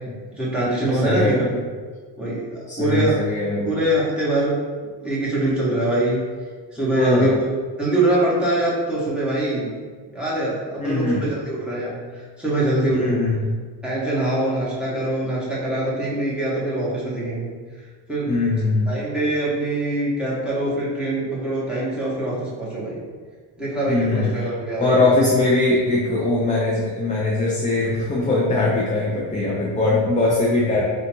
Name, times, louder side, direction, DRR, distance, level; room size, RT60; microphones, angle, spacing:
voice 1, 0.3-1.6 2.2-3.1 3.6-4.6 5.0-6.2 6.7-7.5 7.8-9.7 10.1-13.2 13.8-17.5 18.1-18.3 18.9-23.0 23.6-25.0, right 1 dB, ahead, -8 dB, 1.4 m, -23 dB
voice 2, 1.0-1.4 2.7-3.7 6.9-7.3 10.8-11.2 12.9-13.5 18.3-19.0 23.9-24.3 24.8-30.9, left 2 dB, 15° left, -4 dB, 0.6 m, -21 dB
3.9 x 2.5 x 4.4 m, 1.5 s
cardioid pair, 110°, 45 cm